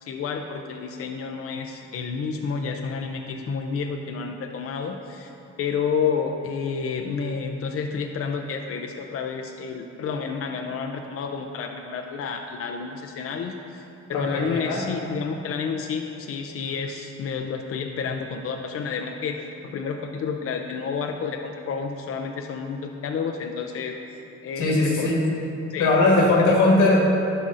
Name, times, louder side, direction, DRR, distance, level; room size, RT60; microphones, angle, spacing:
voice 1, 0.0-5.3 5.6-19.4 19.6-23.9 24.4-25.1 25.7-25.9 26.4-26.5, left 5 dB, 50° left, 3 dB, 0.5 m, -30 dB
voice 2, 14.1-14.8 24.6-25.2 25.8-27.1, left 2 dB, 85° left, -2 dB, 1.5 m, -19 dB
12.0 x 5.2 x 2.5 m, 2.8 s
cardioid pair, 90°, 30 cm